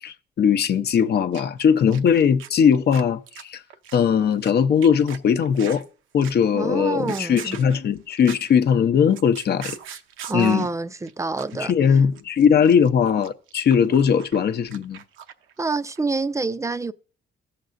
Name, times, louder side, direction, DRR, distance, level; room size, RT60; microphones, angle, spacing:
voice 1, 0.0-3.6 3.9-5.8 6.1-9.8 10.3-10.7 11.6-15.0, left 7 dB, 55° left, 0.7 m, -19 dB
sound 1, 1.3-1.6 1.9-4.5 4.8-5.8 6.2-6.5 6.9-8.5 8.9-10.7 11.1-11.2 11.4-11.7 11.9-15.6 15.9-16.0, right 9 dB, 85° right, 0.7 m, -40 dB
voice 2, 6.5-7.6 10.3-11.7 15.6-16.9, right 3 dB, 15° right, 0.4 m, -27 dB
17.0 x 6.7 x 2.5 m
cardioid pair, 90°, 20 cm